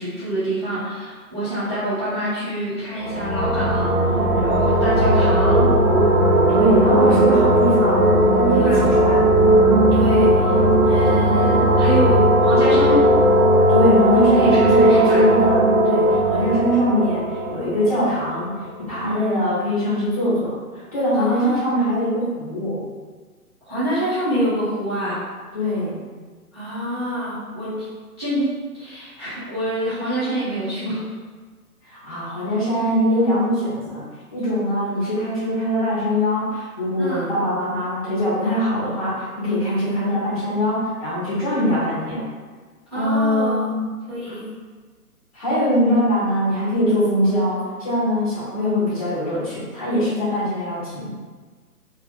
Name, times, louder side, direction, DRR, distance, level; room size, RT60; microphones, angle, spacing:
voice 1, 0.0-4.0 4.3-5.7 6.8-7.0 8.5-8.8 9.9-13.0 14.3-15.2 18.9-19.3 21.1-21.6 23.6-25.2 26.5-27.7 28.2-28.5 28.8-31.1 37.0-37.3 42.9-43.7 44.1-44.4 45.9-46.0, equal, 20° right, -16 dB, 0.5 m, -26 dB
sound 1, 3.0-18.5, right 1 dB, 85° right, 0.7 m, -17 dB
voice 2, 6.5-8.0 8.3-9.2 13.7-15.6 15.8-18.5 18.8-22.8 25.5-26.0 31.8-34.1 34.3-42.3 42.9-43.9 44.3-44.4 45.3-51.1, equal, 25° left, -9 dB, 0.7 m, -22 dB
2.3 x 2.2 x 3.4 m, 1.4 s
figure-of-eight pair, 135°, 46 cm